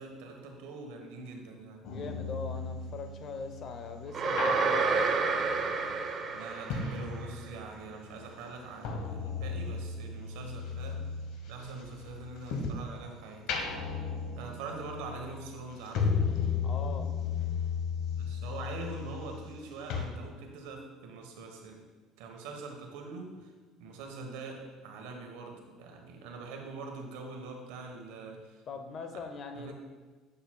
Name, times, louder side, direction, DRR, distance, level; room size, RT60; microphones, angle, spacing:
voice 1, 0.0-1.9 6.3-11.0 11.5-13.8 14.4-16.3 18.1-21.9 22.2-23.5 23.8-28.6 29.5-29.7, right 3 dB, 85° right, 3 dB, 1.1 m, -44 dB
sound 1, 1.8-7.8 8.1-12.9 13.3-19.6 19.9-20.0, left 5 dB, 75° left, 1.0 m, -35 dB
voice 2, 1.8-5.0 16.6-17.1 28.7-29.7, left 4 dB, 45° left, 6 dB, 0.7 m, -41 dB
sound 2, 4.1-7.2, right 4 dB, 40° right, 0.7 m, -29 dB
7.4 x 6.8 x 2.3 m, 1.3 s
supercardioid pair, 110°, 0 cm